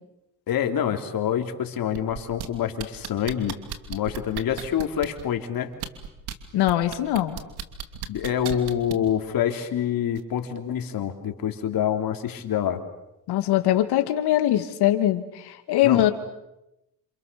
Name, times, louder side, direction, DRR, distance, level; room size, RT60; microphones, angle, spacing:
voice 1, 0.5-3.6 3.9-5.7 8.1-12.8 15.8-16.1, left 9 dB, 60° left, 6 dB, 3.4 m, -26 dB
sound 1, 2.0-2.5 2.8-5.2 5.7-6.3 6.7-9.1 10.2-10.3, right 10 dB, 75° right, 2.8 m, -34 dB
voice 2, 6.5-7.4 13.3-16.1, left 13 dB, 75° left, 8 dB, 2.4 m, -22 dB
28.5 x 27.5 x 7.0 m, 0.88 s
cardioid pair, 90°, 40 cm